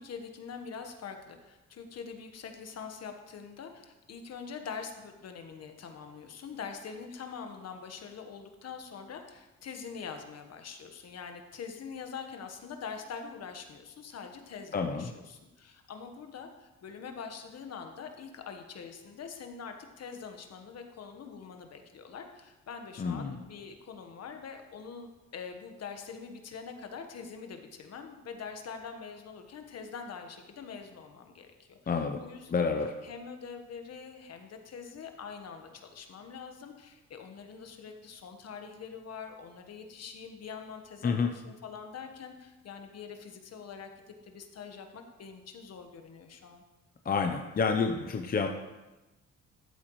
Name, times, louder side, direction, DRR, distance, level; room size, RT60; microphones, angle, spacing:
voice 1, 0.0-32.7 33.0-46.6, left 6 dB, 55° left, 5 dB, 1.3 m, -44 dB
voice 2, 14.7-15.1 23.0-23.4 31.9-32.2 32.5-32.9 41.0-41.3 47.0-48.5, left 5 dB, 30° left, 5 dB, 0.7 m, -29 dB
13.0 x 8.3 x 3.1 m, 1.1 s
cardioid pair, 90°, 30 cm